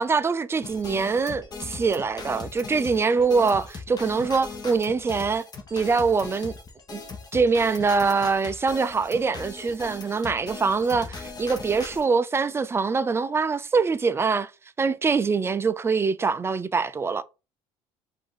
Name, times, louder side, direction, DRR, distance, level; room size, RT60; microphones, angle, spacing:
voice 1, 0.0-5.4 5.7-6.5 6.9-7.0 7.3-14.5 14.8-17.2, right 4 dB, 20° right, 0.4 m, -24 dB
sound 1, 0.6-12.0, left 4 dB, 35° left, 1.2 m, -39 dB
4.8 x 2.7 x 3.9 m
supercardioid pair, 100°, 12 cm